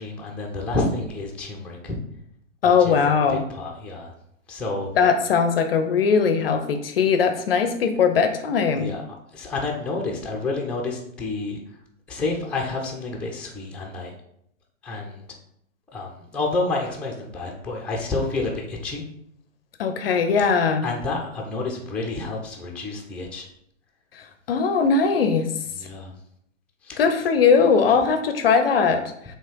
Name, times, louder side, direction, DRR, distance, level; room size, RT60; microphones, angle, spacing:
voice 1, 0.0-2.0 2.8-4.1 4.5-4.9 8.8-9.0 9.3-11.6 12.1-14.1 14.8-15.2 15.9-19.0 20.8-23.4 25.8-26.1 26.9-27.0, left 3 dB, 5° left, -1 dB, 0.7 m, -29 dB
voice 2, 2.6-3.4 4.9-8.9 19.8-20.9 24.1-25.5 27.0-29.0, left 5 dB, 45° left, 8 dB, 0.6 m, -20 dB
7.2 x 2.9 x 4.6 m, 0.73 s
figure-of-eight pair, 110°, 40 cm